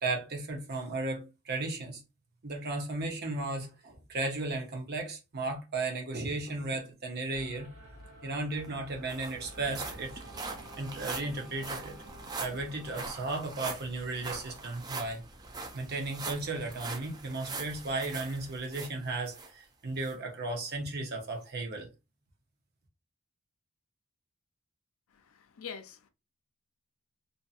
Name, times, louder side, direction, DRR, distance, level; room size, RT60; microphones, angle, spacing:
voice 1, 0.0-2.0 2.4-7.7 8.2-10.2 10.8-12.0 12.4-15.2 15.7-21.9, right 2 dB, 45° right, 0.7 m, -35 dB
sound 1, 7.3-13.1, right 1 dB, 65° right, 1.6 m, -50 dB
sound 2, 8.3-8.4 8.6-19.5 20.0-20.1 20.7-20.8, right 3 dB, 20° right, 0.4 m, -42 dB
voice 2, 25.1-26.1, left 6 dB, 70° left, 0.4 m, -45 dB
2.6 x 2.6 x 2.4 m
head